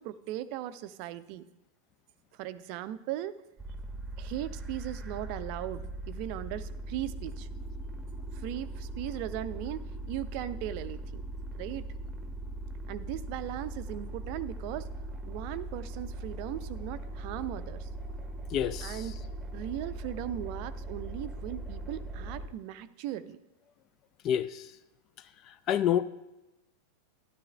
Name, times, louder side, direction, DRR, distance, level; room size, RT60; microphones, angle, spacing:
voice 1, 0.0-1.5 2.4-3.4 4.2-7.5 8.3-11.2 11.5-11.9 12.9-14.9 15.3-17.9 18.8-19.1 19.5-23.4, right 12 dB, 45° right, 0.4 m, -38 dB
sound 1, 3.6-22.5, right 2 dB, 10° right, 1.1 m, -40 dB
voice 2, 18.5-19.0 24.2-24.7 25.7-26.0, left 10 dB, 35° left, 0.4 m, -27 dB
13.0 x 11.0 x 2.3 m
figure-of-eight pair, 90°, 0 cm